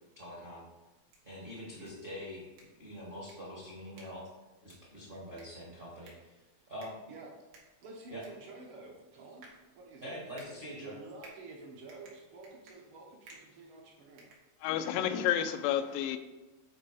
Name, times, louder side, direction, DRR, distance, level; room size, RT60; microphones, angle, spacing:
voice 1, 0.1-0.6 1.2-2.5 2.8-4.2 4.6-6.3 6.7-7.0 8.1-8.2 10.0-10.9, equal, 35° right, 0.9 m, -44 dB
sound 1, 0.9-15.0, right 3 dB, 80° right, 3.3 m, -61 dB
voice 2, 7.8-9.4 9.7-10.2 10.8-14.3, right 3 dB, 60° right, 1.4 m, -50 dB
voice 3, 14.6-16.2, left 10 dB, 85° left, 2.2 m, -30 dB
8.8 x 4.5 x 4.9 m
omnidirectional pair, 4.0 m